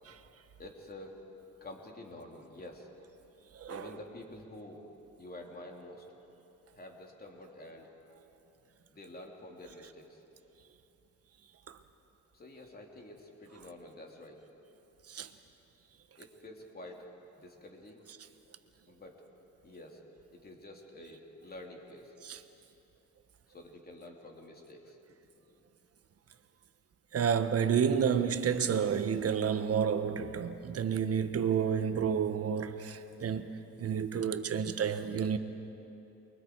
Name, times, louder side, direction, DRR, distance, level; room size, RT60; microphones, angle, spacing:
voice 1, 0.6-1.2 1.6-2.9 3.7-4.8 5.2-6.1 6.7-7.9 8.9-10.2 12.3-14.4 14.7-14.8 16.2-17.1 17.4-18.0 18.9-19.2 19.6-20.0 20.3-22.2 23.5-25.0 25.4-25.6, left 1 dB, 30° left, 3.3 m, -49 dB
voice 2, 27.1-33.5 33.8-35.4, right 7 dB, 50° right, 1.3 m, -30 dB
29.0 x 23.0 x 4.8 m
cardioid pair, 90°, 30 cm